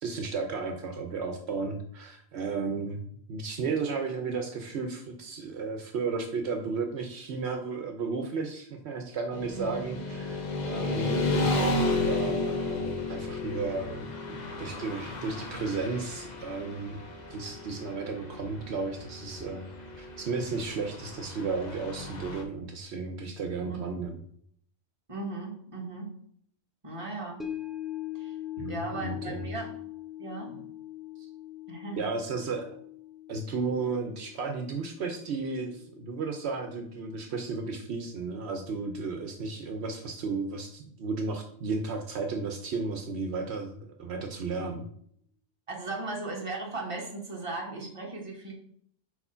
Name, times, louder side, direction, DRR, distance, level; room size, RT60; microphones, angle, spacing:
voice 1, 0.0-3.0 3.3-14.1 14.6-17.0 17.3-19.7 20.0-24.2 28.6-29.5 31.2-31.3 31.9-32.7 33.3-44.8, right 4 dB, 75° right, 4 dB, 1.0 m, -34 dB
Motorcycle / Traffic noise roadway noise, 9.3-22.4, left 2 dB, 45° left, 0.9 m, -33 dB
voice 2, 25.1-26.1 26.8-27.4 28.1-28.4 28.7-29.7 30.2-30.7 31.7-32.1 45.7-48.5, right 2 dB, 30° right, -1 dB, 1.4 m, -37 dB
sound 1, 27.4-37.8 38.1-38.2, left 12 dB, ahead, 0.4 m, -42 dB
4.8 x 4.4 x 5.5 m, 0.66 s
omnidirectional pair, 1.1 m